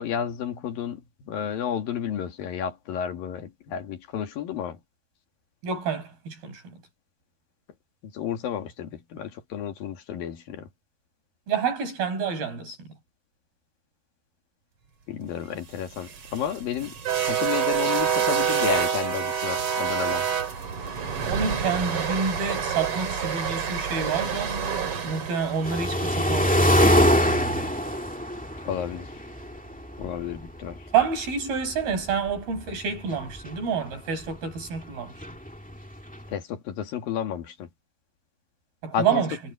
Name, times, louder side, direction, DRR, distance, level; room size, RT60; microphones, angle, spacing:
voice 1, 0.0-4.8 8.0-10.7 15.1-16.9 17.2-20.3 28.7-29.1 30.0-30.9 36.3-37.7 38.9-39.2, left 8 dB, 70° left, 3.7 m, -31 dB
voice 2, 5.6-6.8 11.5-13.0 21.2-24.6 25.0-27.7 30.9-35.2 38.8-39.4, right 6 dB, 75° right, 8.5 m, -28 dB
sound 1, 15.8-28.0, right 7 dB, 40° right, 3.0 m, -28 dB
sound 2, 25.6-30.4 30.7-30.8 31.0-31.1 31.8-31.9 32.3-32.4 32.7-32.8 33.0-33.5 34.8-34.9 35.2-36.2, equal, 10° left, 0.5 m, -23 dB
omnidirectional pair, 4.3 m